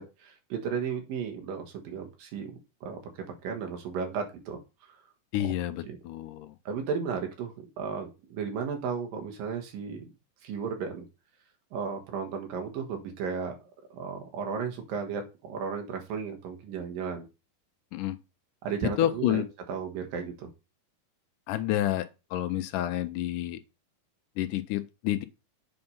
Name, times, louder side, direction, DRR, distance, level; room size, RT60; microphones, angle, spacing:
voice 1, 0.0-3.0 3.4-4.6 4.9-5.0 5.4-5.5 5.8-6.0 6.7-10.1 10.4-11.1 11.7-13.6 13.9-17.3 18.6-19.4 19.7-20.5, right 6 dB, 85° right, 3.1 m, -34 dB
voice 2, 5.3-6.5 17.9-18.2 19.0-19.4 21.5-23.6 24.4-25.2, left 13 dB, 80° left, 2.1 m, -29 dB
7.8 x 4.4 x 5.5 m
omnidirectional pair, 3.8 m